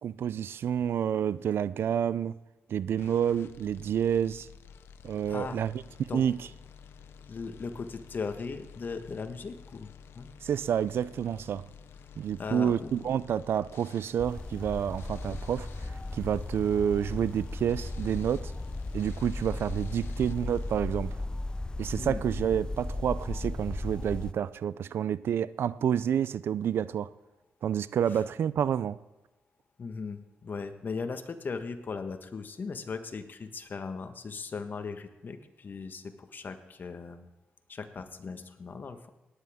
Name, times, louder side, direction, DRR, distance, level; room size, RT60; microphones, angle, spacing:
voice 1, 0.0-2.4 2.7-4.5 5.0-6.4 10.4-11.6 12.2-15.7 16.1-18.5 18.9-21.2 21.8-27.1 27.6-29.0, right 9 dB, 70° right, 0.4 m, -29 dB
sound 1, 3.0-20.8, left 7 dB, 80° left, 0.7 m, -51 dB
voice 2, 5.3-5.6 6.1-6.2 7.3-10.3 12.4-13.0 22.0-22.2 28.1-28.2 29.8-37.3 37.7-39.1, left 4 dB, 50° left, 1.4 m, -38 dB
sound 2, 14.2-24.3, left 2 dB, 20° left, 0.5 m, -36 dB
18.5 x 10.0 x 3.6 m
cardioid pair, 60°, 4 cm